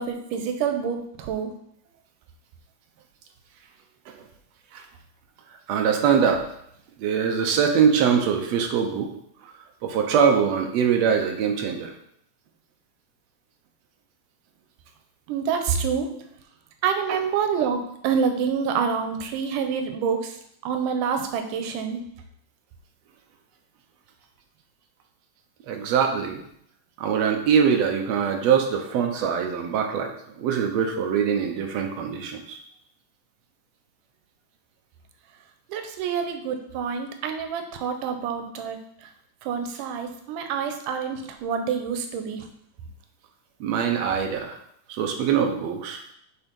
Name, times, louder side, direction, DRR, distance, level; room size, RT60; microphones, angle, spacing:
voice 1, 0.0-1.5 15.3-16.1 16.8-17.8 18.0-20.4 20.6-22.0 35.7-39.1 39.4-42.5, right 6 dB, 90° right, 6 dB, 2.4 m, -27 dB
voice 2, 5.7-6.4 7.0-9.1 9.4-9.5 9.8-11.9 17.1-17.2 25.7-26.4 27.0-32.6 43.6-44.6 44.9-46.0, right 7 dB, 70° right, 3 dB, 1.7 m, -23 dB
7.2 x 4.3 x 5.2 m, 0.71 s
omnidirectional pair, 3.7 m